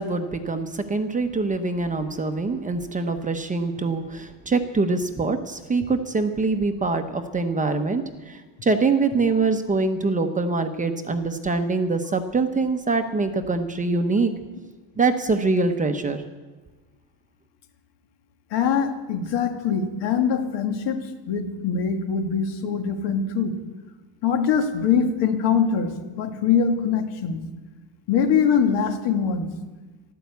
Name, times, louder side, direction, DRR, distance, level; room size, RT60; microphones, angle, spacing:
voice 1, 0.0-14.3 15.0-16.2, right 3 dB, 15° right, 7 dB, 0.8 m, -24 dB
voice 2, 18.5-23.5 24.2-27.4 28.1-29.5, left 6 dB, 70° left, 6 dB, 2.0 m, -23 dB
14.0 x 12.5 x 8.2 m, 1.3 s
cardioid pair, 165°, 45 cm